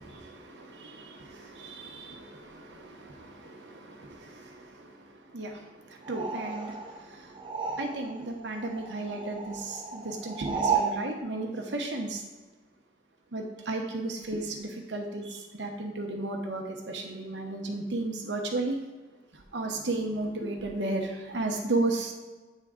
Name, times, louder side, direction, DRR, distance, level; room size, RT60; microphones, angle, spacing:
voice 1, 0.0-7.5 7.8-12.2 13.3-18.8 19.3-22.1, right 2 dB, 75° right, 2 dB, 1.0 m, -34 dB
sound 1, 6.0-8.3 8.5-11.0, right 6 dB, 25° right, 0.6 m, -33 dB
8.9 x 3.7 x 3.7 m, 1.3 s
head